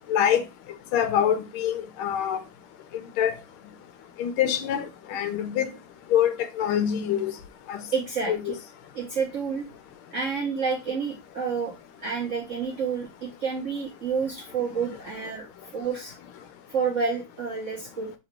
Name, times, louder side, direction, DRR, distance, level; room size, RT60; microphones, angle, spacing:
voice 1, 0.1-0.4 0.9-2.4 3.2-3.4 4.2-5.7 6.1-7.3 7.7-7.8 8.3-8.5, left 9 dB, 80° left, 1.5 m, -25 dB
voice 2, 7.9-8.5 8.9-9.6 10.1-11.7 12.0-15.5 15.7-16.1 16.7-18.1, right 5 dB, 60° right, 0.8 m, -29 dB
3.9 x 2.9 x 4.5 m
omnidirectional pair, 2.4 m